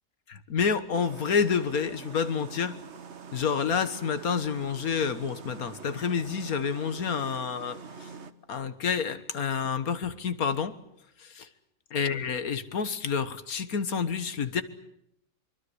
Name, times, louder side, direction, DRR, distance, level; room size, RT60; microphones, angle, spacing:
voice 1, 0.3-2.8 3.3-8.1 8.5-10.8 11.2-11.5 11.9-14.6, left 6 dB, 85° left, 1.9 m, -29 dB
sound 1, 0.9-8.3, right 5 dB, 55° right, 1.4 m, -45 dB
24.5 x 24.0 x 8.0 m
omnidirectional pair, 1.5 m